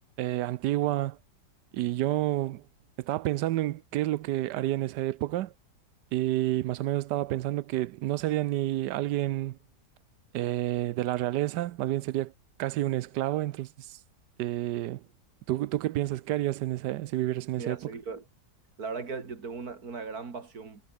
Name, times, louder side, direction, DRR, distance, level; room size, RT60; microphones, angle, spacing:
voice 1, 0.2-1.2 1.7-2.6 3.0-5.5 6.1-9.6 10.3-12.3 12.6-14.0 14.4-15.0 15.5-17.8, right 15 dB, 80° right, 1.2 m, -29 dB
voice 2, 17.6-18.2 18.8-20.8, right 4 dB, 60° right, 3.0 m, -38 dB
omnidirectional pair, 1.8 m